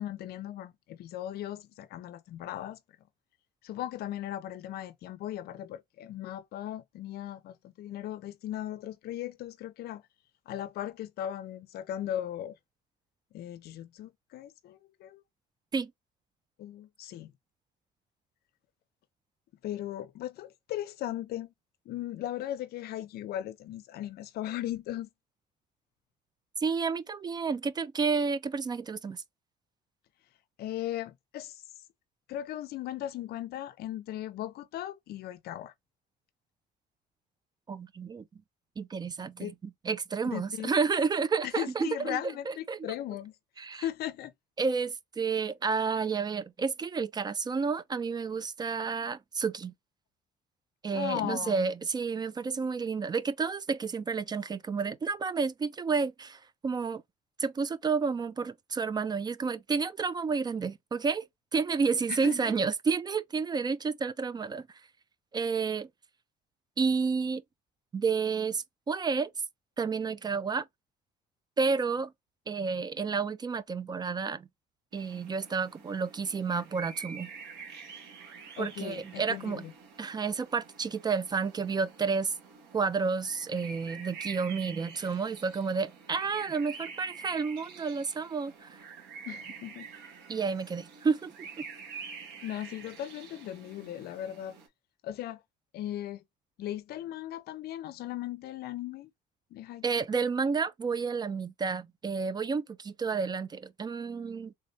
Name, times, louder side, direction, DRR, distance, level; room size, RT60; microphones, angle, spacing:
voice 1, 0.0-2.8 3.6-10.0 10.5-12.6 13.3-15.2 16.6-17.3 19.6-21.5 21.9-25.1 30.6-31.6 32.3-35.7 39.4-39.5 40.3-40.8 41.4-44.3 50.9-51.6 62.1-62.4 78.6-79.7 89.3-89.9 92.4-94.6 95.0-95.4 95.7-96.2 96.6-99.1 99.5-99.8, left 12 dB, 70° left, 0.5 m, -37 dB
voice 2, 26.6-29.2 37.7-38.2 38.8-42.2 42.5-42.8 43.6-43.8 44.6-49.7 50.8-57.0 57.4-61.3 61.5-64.7 65.3-65.9 66.8-67.4 67.9-69.3 69.8-70.7 71.6-72.1 72.5-74.5 74.9-77.3 78.6-79.7 80.0-82.3 82.7-88.8 90.3-91.6 99.8-104.5, right 5 dB, 25° right, 0.4 m, -30 dB
sound 1, 74.9-94.7, right 6 dB, 85° right, 1.4 m, -47 dB
3.3 x 3.1 x 2.6 m
cardioid pair, 110°, 17 cm